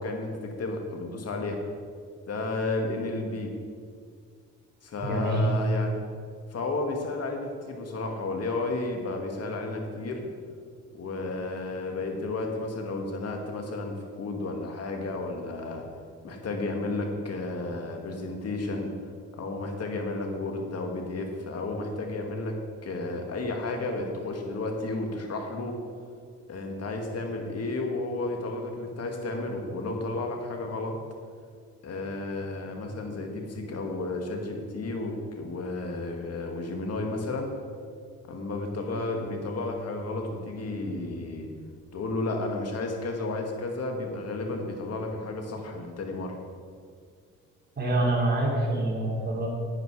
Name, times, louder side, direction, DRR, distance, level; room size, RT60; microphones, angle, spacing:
voice 1, 0.0-1.6 2.3-3.5 4.8-5.9 6.5-10.3 10.9-15.8 16.2-18.9 19.4-22.6 22.8-25.7 26.5-31.0 31.8-37.5 38.3-41.5 41.9-46.4, left 2 dB, 55° left, 3 dB, 2.1 m, -32 dB
voice 2, 5.0-5.5 47.8-49.5, right 1 dB, 35° right, -4 dB, 3.4 m, -26 dB
12.0 x 9.0 x 4.9 m, 2.1 s
cardioid pair, 90°, 30 cm